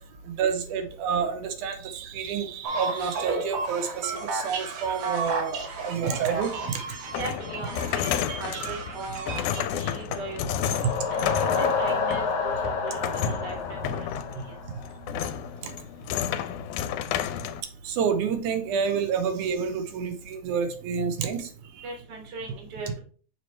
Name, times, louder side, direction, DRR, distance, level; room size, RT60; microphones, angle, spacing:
voice 1, 0.3-6.8 17.8-21.5 21.8-21.9, right 6 dB, 90° right, 6 dB, 2.3 m, -29 dB
sound 1, 2.6-9.6, right 4 dB, 65° right, 1.5 m, -33 dB
sound 2, 6.3-17.6, left 9 dB, 85° left, 2.0 m, -32 dB
voice 2, 7.2-10.4 10.7-10.8 11.1-11.2 11.6-14.1 21.8-23.0, right 3 dB, 40° right, 1 dB, 1.8 m, -38 dB
sound 3, 10.1-15.0, left 5 dB, 65° left, 1.7 m, -29 dB
7.2 x 3.1 x 4.3 m, 0.41 s
omnidirectional pair, 3.5 m